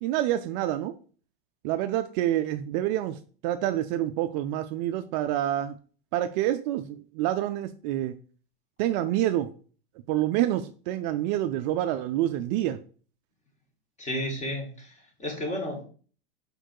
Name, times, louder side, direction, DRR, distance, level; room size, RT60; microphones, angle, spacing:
voice 1, 0.0-1.0 1.6-5.8 6.1-8.2 8.8-9.5 10.1-12.8, right 13 dB, 45° right, 10 dB, 0.4 m, -27 dB
voice 2, 14.0-15.9, equal, 25° left, 1 dB, 2.2 m, -32 dB
4.6 x 4.4 x 4.6 m, 0.41 s
hypercardioid pair, 115°, 31 cm